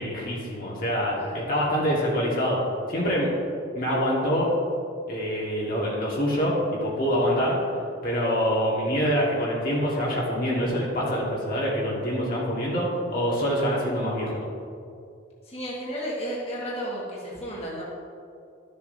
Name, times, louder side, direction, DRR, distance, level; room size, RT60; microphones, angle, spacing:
voice 1, 0.0-2.6 2.9-3.3 3.7-4.5 5.1-7.6 8.0-14.3, equal, 45° left, -5 dB, 1.6 m, -25 dB
voice 2, 1.1-1.4 15.4-17.8, equal, 30° left, -6 dB, 1.6 m, -33 dB
12.5 x 6.9 x 2.7 m, 2.5 s
head